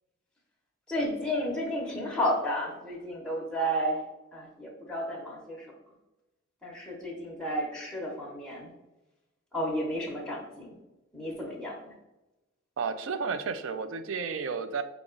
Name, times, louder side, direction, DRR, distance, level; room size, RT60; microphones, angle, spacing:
voice 1, 0.9-4.0 4.3-5.7 6.6-8.7 9.5-10.8 11.1-11.9, equal, 5° left, -3 dB, 0.9 m, -32 dB
voice 2, 12.8-14.8, right 5 dB, 85° right, 10 dB, 0.4 m, -32 dB
4.8 x 2.3 x 3.8 m, 0.98 s
head